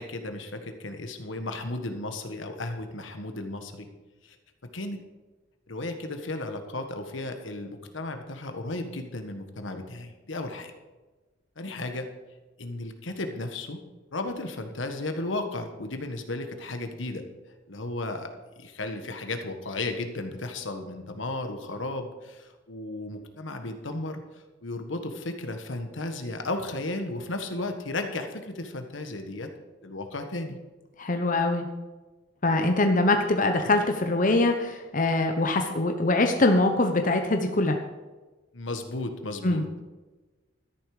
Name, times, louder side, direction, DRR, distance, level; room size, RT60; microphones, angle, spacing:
voice 1, 0.0-3.9 4.2-4.4 4.7-5.0 5.7-10.7 11.6-12.1 12.6-13.8 14.1-17.3 17.7-18.3 18.6-24.2 24.6-29.5 29.8-30.6 38.5-39.6, left 2 dB, 80° left, 6 dB, 1.5 m, -34 dB
voice 2, 31.0-31.7 32.4-37.8 39.4-39.6, left 2 dB, 45° left, 5 dB, 0.9 m, -23 dB
13.0 x 10.5 x 5.0 m, 1.2 s
head